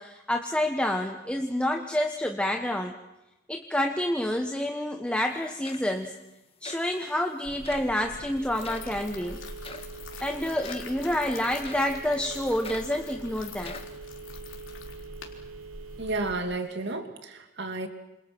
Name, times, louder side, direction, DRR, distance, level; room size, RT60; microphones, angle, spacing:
voice 1, 0.0-2.9 3.5-6.1 6.6-9.4 10.2-13.7, left 1 dB, 5° left, 1.3 m, -28 dB
sound 1, 5.3-5.4 5.6-6.1 6.6-6.9 7.6-7.9 8.6-8.9 9.6-9.9 10.6-11.0 11.6-12.0 12.6-13.0 13.6-14.0, left 3 dB, 30° left, 1.7 m, -43 dB
Telephone, 7.5-16.4, right 3 dB, 80° right, 1.9 m, -43 dB
sound 2, 8.4-16.3, left 7 dB, 65° left, 3.9 m, -47 dB
voice 2, 16.0-17.9, right 2 dB, 55° right, 2.6 m, -32 dB
28.0 x 28.0 x 6.1 m
head